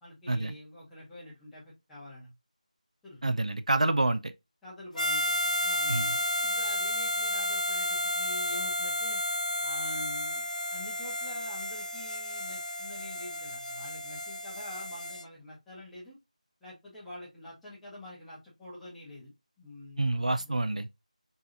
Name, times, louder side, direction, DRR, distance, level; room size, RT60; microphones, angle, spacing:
voice 1, 0.0-2.3 3.0-3.3 4.6-9.2 9.6-10.4 10.7-16.2 16.6-19.3 19.6-20.6, left 1 dB, ahead, 0.6 m, -46 dB
voice 2, 3.2-4.3 5.9-6.2 20.0-20.9, right 2 dB, 60° right, 0.3 m, -28 dB
Harmonica, 5.0-15.2, left 1 dB, 65° left, 0.4 m, -32 dB
3.8 x 2.7 x 2.5 m
figure-of-eight pair, 170°, 4 cm